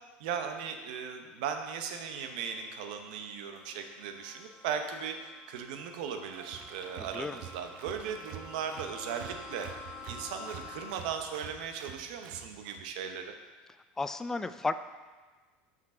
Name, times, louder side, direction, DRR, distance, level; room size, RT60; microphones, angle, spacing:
voice 1, 0.2-9.7 10.1-13.3, right 7 dB, 80° right, 6 dB, 0.8 m, -37 dB
sound 1, 1.2-10.9, left 4 dB, 10° right, 2.1 m, -50 dB
Applause, 6.2-12.9, right 11 dB, 60° right, 0.5 m, -48 dB
voice 2, 14.0-14.8, left 3 dB, 10° left, 11 dB, 0.3 m, -33 dB
6.6 x 6.0 x 4.4 m, 1.4 s
supercardioid pair, 125°, 4 cm